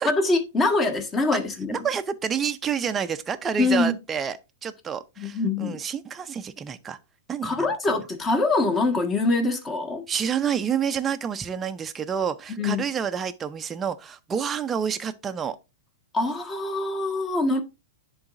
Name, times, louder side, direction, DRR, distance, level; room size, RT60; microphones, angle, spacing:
voice 1, 0.0-1.8 3.6-3.9 5.2-5.8 7.4-10.0 12.5-12.8 16.1-17.6, left 3 dB, 20° left, 1.5 m, -24 dB
voice 2, 1.7-7.0 7.3-7.7 10.1-15.6, right 7 dB, 20° right, 0.5 m, -28 dB
10.5 x 3.9 x 2.6 m
hypercardioid pair, 110°, 0 cm